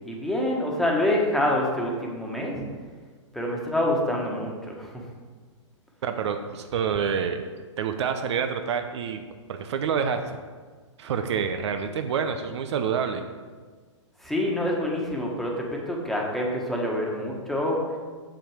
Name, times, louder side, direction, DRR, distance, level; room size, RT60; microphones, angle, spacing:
voice 1, 0.0-2.6 3.3-5.0 14.2-17.8, left 1 dB, ahead, -2 dB, 1.5 m, -26 dB
voice 2, 6.0-7.5 7.8-9.2 9.5-10.4 11.0-13.2, right 7 dB, 60° right, 7 dB, 0.8 m, -27 dB
7.8 x 7.2 x 5.1 m, 1.5 s
hypercardioid pair, 125°, 16 cm